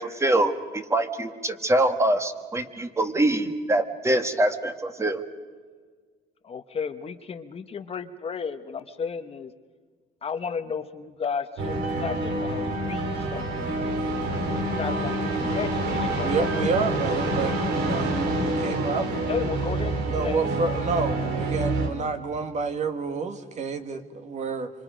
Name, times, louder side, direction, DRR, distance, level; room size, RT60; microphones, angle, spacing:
voice 1, 0.0-5.2, right 1 dB, 15° right, 8 dB, 1.7 m, -24 dB
voice 2, 6.4-9.5 10.2-13.9 14.3-16.3 19.3-20.4, left 6 dB, 35° left, 9 dB, 1.1 m, -34 dB
sound 1, 11.6-21.9, right 2 dB, 80° right, 3.0 m, -27 dB
voice 3, 16.2-19.1 20.1-24.7, right 4 dB, 45° right, 8 dB, 1.8 m, -29 dB
27.0 x 25.5 x 5.1 m, 1.5 s
cardioid pair, 110°, 17 cm